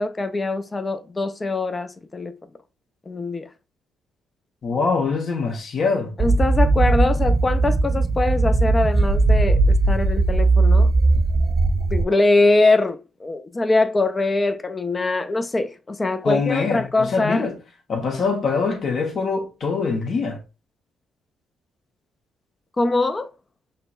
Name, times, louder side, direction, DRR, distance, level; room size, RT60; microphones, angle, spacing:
voice 1, 0.0-2.4 3.1-3.5 6.2-10.9 11.9-17.5 22.8-23.3, left 2 dB, 30° left, 0.4 m, -22 dB
voice 2, 4.6-6.2 16.2-17.6 17.9-20.4, left 4 dB, 55° left, 1.1 m, -23 dB
sound 1, 6.2-12.1, right 3 dB, 35° right, 0.3 m, -18 dB
5.5 x 2.1 x 2.4 m
hypercardioid pair, 50°, 0 cm